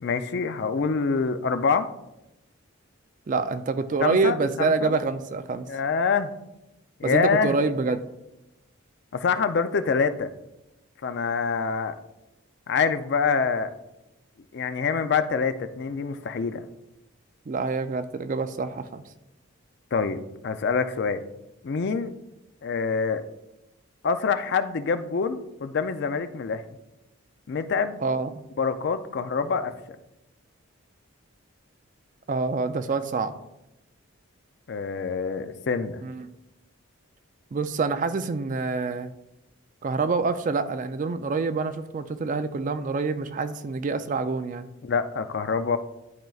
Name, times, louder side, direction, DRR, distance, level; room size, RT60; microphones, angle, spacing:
voice 1, 0.0-1.9 4.0-5.0 5.7-6.3 7.0-7.6 9.1-10.3 11.0-12.0 12.7-13.7 14.5-16.6 19.9-21.2 21.6-22.1 22.6-23.2 24.0-26.6 27.5-28.0 28.6-29.7 34.7-36.0 44.8-45.8, left 5 dB, 50° left, 10 dB, 0.4 m, -26 dB
voice 2, 3.3-5.7 7.0-8.0 17.5-19.0 28.0-28.4 32.3-33.3 36.0-36.3 37.5-39.1 39.8-44.7, right 4 dB, 35° right, 10 dB, 0.3 m, -26 dB
11.5 x 4.5 x 2.3 m, 0.92 s
head